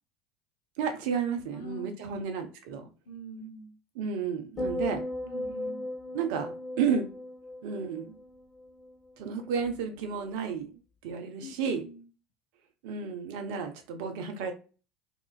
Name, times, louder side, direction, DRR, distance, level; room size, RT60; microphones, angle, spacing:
voice 1, 0.8-2.8 4.0-5.0 6.1-7.0 7.6-8.2 9.2-10.7 11.0-11.8 12.8-14.5, right 6 dB, 60° right, 7 dB, 0.6 m, -32 dB
voice 2, 1.5-2.2 3.1-3.7 5.2-5.8 11.4-12.1, right 1 dB, 70° left, 6 dB, 0.5 m, -44 dB
sound 1, 4.6-9.0 9.3-9.7, left 1 dB, 25° left, 1.2 m, -37 dB
2.8 x 2.4 x 2.2 m, 0.35 s
figure-of-eight pair, 70°, 0 cm